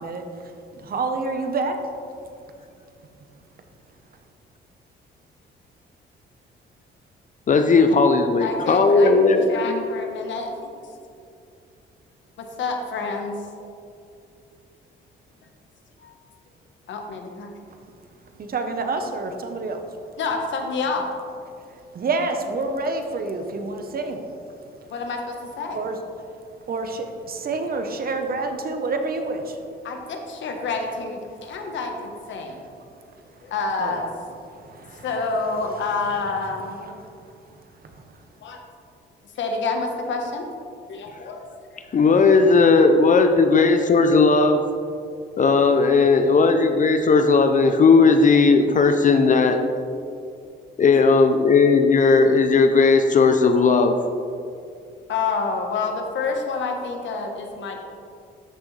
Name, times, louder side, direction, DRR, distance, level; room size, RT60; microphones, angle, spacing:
voice 1, 0.0-1.7 18.4-19.8 21.7-24.9 25.7-26.0 26.7-29.6 31.5-31.6 32.5-32.7 33.2-33.5 33.8-34.0 34.5-35.6 37.5-38.2, right 3 dB, 50° right, 5 dB, 1.0 m, -29 dB
voice 2, 7.5-9.8 41.9-44.6 45.4-49.6 50.8-54.0, left 4 dB, 40° left, 7 dB, 0.6 m, -16 dB
voice 3, 8.4-10.7 12.6-13.4 16.0-16.1 16.9-17.5 20.2-21.1 24.9-25.8 29.8-32.6 33.4-34.1 35.0-36.8 38.4-38.6 39.3-40.4 40.9-41.4 55.1-57.8, left 4 dB, 70° left, 3 dB, 1.3 m, -28 dB
13.0 x 6.2 x 3.3 m, 2.5 s
cardioid pair, 90°, 20 cm